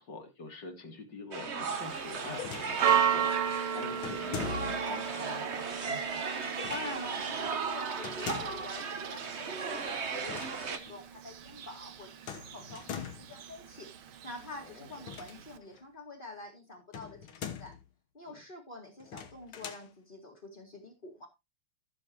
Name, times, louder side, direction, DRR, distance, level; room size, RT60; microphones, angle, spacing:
voice 1, 0.0-6.3 10.4-10.6 14.6-14.9 18.3-18.4, left 3 dB, 55° left, 4 dB, 2.8 m, -46 dB
sound 1, 1.3-10.8, right 5 dB, 40° right, 1.1 m, -36 dB
Church bell, 1.7-15.6, right 9 dB, 70° right, 1.8 m, -36 dB
sound 2, 2.3-3.1 4.0-4.9 6.6-7.0 8.0-8.7 10.2-10.6 10.9-11.0 12.3-13.4 15.0-15.8 16.9-17.8 19.0-19.9, left 8 dB, 70° left, 2.0 m, -42 dB
voice 2, 6.7-13.9 14.2-17.7 18.1-21.3, left 2 dB, 25° left, -2 dB, 2.1 m, -46 dB
15.0 x 7.0 x 3.0 m, 0.23 s
omnidirectional pair, 2.4 m